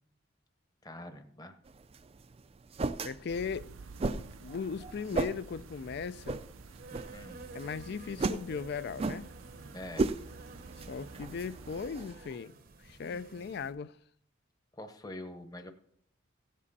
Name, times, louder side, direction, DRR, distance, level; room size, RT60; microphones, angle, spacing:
voice 1, 0.8-1.6 7.1-7.4 9.7-10.1 14.7-15.7, left 1 dB, 20° left, 0.9 m, -45 dB
sound 1, 1.7-12.4, right 3 dB, 30° right, 0.4 m, -37 dB
voice 2, 3.0-3.7 4.1-6.4 7.5-9.3 10.8-14.0, left 5 dB, 55° left, 0.4 m, -38 dB
sound 2, 3.3-11.9, right 3 dB, 90° right, 0.6 m, -51 dB
Insect, 6.6-13.7, right 3 dB, 45° right, 0.7 m, -52 dB
15.5 x 7.5 x 4.1 m
head